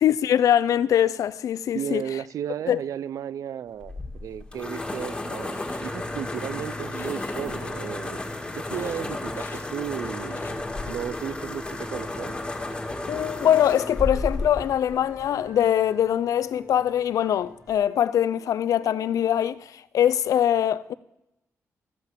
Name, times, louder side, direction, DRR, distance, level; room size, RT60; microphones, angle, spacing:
voice 1, 0.0-2.0 2.7-2.8 13.1-20.9, left 10 dB, 85° left, 0.4 m, -22 dB
voice 2, 1.7-8.2 8.6-12.3, right 9 dB, 80° right, 0.4 m, -34 dB
sound 1, 3.8-15.6, left 2 dB, 20° left, 1.8 m, -33 dB
sound 2, 4.6-4.7 5.3-6.0 6.7-7.4 8.6-9.7 10.0-10.6, left 4 dB, 40° left, 1.1 m, -45 dB
Wind instrument woodwind instrument, 10.7-14.6 14.9-19.2, right 3 dB, 55° right, 3.6 m, -52 dB
13.5 x 5.7 x 7.4 m
wide cardioid pair, 120°, 6 cm